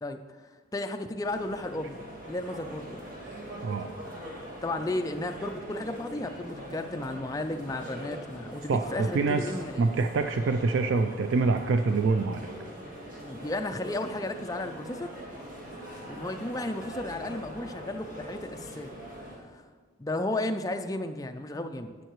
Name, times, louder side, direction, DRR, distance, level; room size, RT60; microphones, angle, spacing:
voice 1, 0.0-3.2 4.6-10.0 13.2-15.1 16.1-18.9 19.5-19.6 20.0-22.0, left 2 dB, 15° left, 6 dB, 0.4 m, -34 dB
sound 1, 1.2-19.4, equal, 45° right, 1.7 m, -42 dB
voice 2, 8.7-9.5 9.8-12.5, right 3 dB, 75° right, 7 dB, 0.4 m, -26 dB
11.0 x 8.0 x 3.1 m, 1.5 s
head